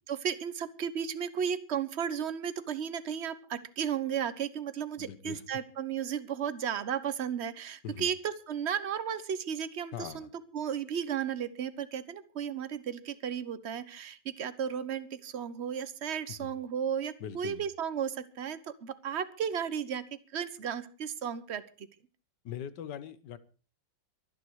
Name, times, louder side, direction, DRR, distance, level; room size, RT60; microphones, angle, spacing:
voice 1, 0.1-10.3 10.5-20.0 20.3-21.9, right 8 dB, 45° right, 14 dB, 1.0 m, -34 dB
voice 2, 5.0-5.4 7.8-8.1 9.9-10.3 16.3-16.5 17.2-17.6 22.4-23.4, left 9 dB, 60° left, 15 dB, 1.6 m, -41 dB
23.5 x 9.5 x 4.7 m, 0.37 s
omnidirectional pair, 2.2 m